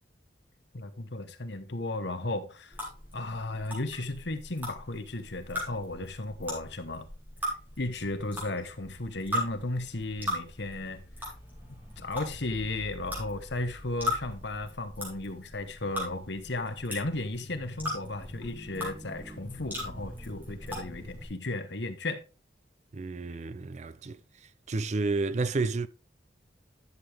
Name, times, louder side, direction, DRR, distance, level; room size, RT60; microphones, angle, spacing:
voice 1, 0.7-2.8 3.1-7.1 7.8-11.3 12.0-22.2, left 2 dB, 65° left, 1.1 m, -35 dB
sound 1, 2.7-21.3, left 1 dB, 10° right, 3.8 m, -39 dB
voice 2, 22.9-24.2 24.7-25.9, right 3 dB, 40° right, 0.4 m, -30 dB
11.0 x 6.7 x 3.5 m
head